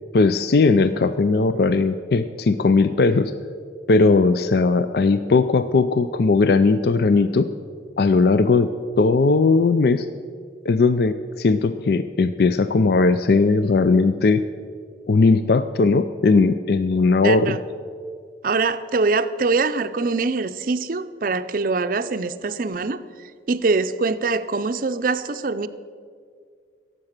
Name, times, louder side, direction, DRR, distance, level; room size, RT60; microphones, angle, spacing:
voice 1, 0.1-3.3 3.9-7.5 8.0-8.7 9.0-10.1 10.7-14.4 15.1-17.6, left 3 dB, 60° left, 11 dB, 0.4 m, -18 dB
voice 2, 17.2-17.6 18.4-23.0 23.5-25.7, right 3 dB, 50° right, 12 dB, 0.5 m, -23 dB
16.5 x 7.6 x 6.6 m, 2.1 s
head